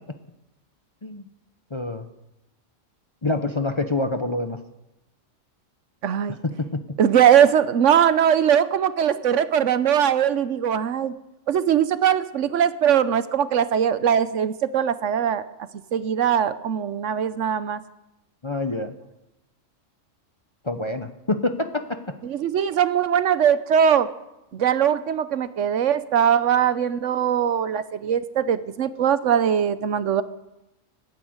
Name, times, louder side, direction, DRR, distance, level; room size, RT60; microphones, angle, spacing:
voice 1, 1.7-2.1 3.2-4.6 6.4-7.0 18.4-18.9 20.6-22.1, left 2 dB, 25° left, 7 dB, 0.7 m, -26 dB
voice 2, 6.0-6.4 7.0-11.1 11.5-15.4 15.9-17.8 22.2-24.1 24.5-30.2, right 8 dB, 70° right, 14 dB, 1.0 m, -21 dB
15.0 x 9.5 x 9.4 m, 0.94 s
omnidirectional pair, 1.4 m